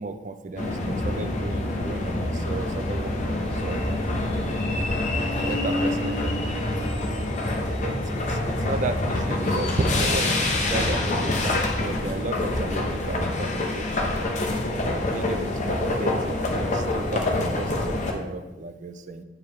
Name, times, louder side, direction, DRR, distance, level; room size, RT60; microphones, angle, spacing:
voice 1, 0.0-4.4 5.3-6.6 7.8-13.9 14.9-19.2, right 3 dB, 45° right, 9 dB, 0.4 m, -34 dB
sound 1, 0.6-18.1, left 2 dB, 45° left, 0.8 m, -26 dB
8.5 x 4.6 x 3.1 m, 1.1 s
head